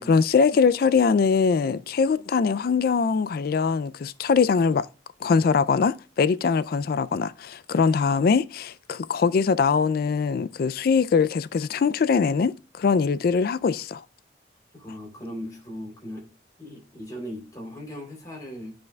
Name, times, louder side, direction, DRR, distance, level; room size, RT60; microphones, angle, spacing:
voice 1, 0.0-4.9 5.2-14.0, left 5 dB, 55° left, 0.3 m, -22 dB
voice 2, 14.7-16.2 16.6-18.7, equal, 20° left, 3.1 m, -38 dB
11.5 x 5.1 x 2.3 m
head